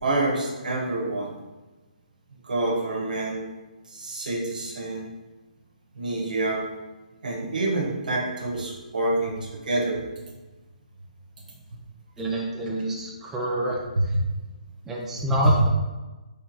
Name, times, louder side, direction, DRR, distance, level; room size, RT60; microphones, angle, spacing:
voice 1, 0.0-1.4 2.4-3.5 3.9-5.1 5.9-6.7 7.2-10.0 14.0-14.2 15.4-15.5, right 2 dB, 85° right, 0 dB, 1.0 m, -26 dB
voice 2, 12.2-13.8 14.1-14.2 14.9-15.7, right 1 dB, 10° right, -3 dB, 0.4 m, -27 dB
3.8 x 3.2 x 3.0 m, 1.2 s
hypercardioid pair, 155°, 4 cm